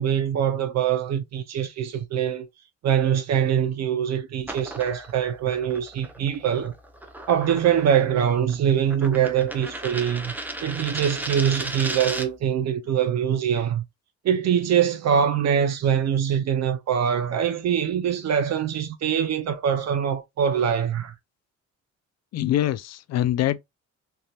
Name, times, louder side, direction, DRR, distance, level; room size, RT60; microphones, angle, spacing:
voice 1, 0.0-2.5 2.8-6.7 7.3-10.3 10.6-13.8 14.2-21.1, right 8 dB, 60° right, 0.6 m, -23 dB
sound 1, 4.4-12.5, right 1 dB, 5° right, 0.6 m, -36 dB
voice 2, 22.3-23.6, left 12 dB, 60° left, 0.5 m, -24 dB
3.3 x 2.7 x 2.3 m
cardioid pair, 90°, 30 cm